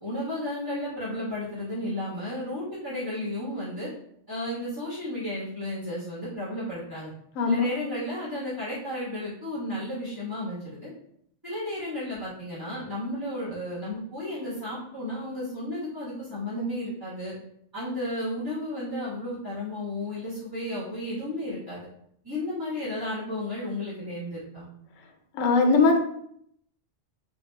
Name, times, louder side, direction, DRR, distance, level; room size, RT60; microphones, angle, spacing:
voice 1, 0.0-3.9 4.3-7.1 7.4-10.9 11.4-17.3 17.7-21.9 22.2-24.7, left 1 dB, 15° right, -10 dB, 1.2 m, -33 dB
voice 2, 7.4-7.7 25.3-26.0, left 4 dB, 85° left, 4 dB, 1.0 m, -20 dB
3.6 x 2.3 x 3.2 m, 0.70 s
omnidirectional pair, 1.3 m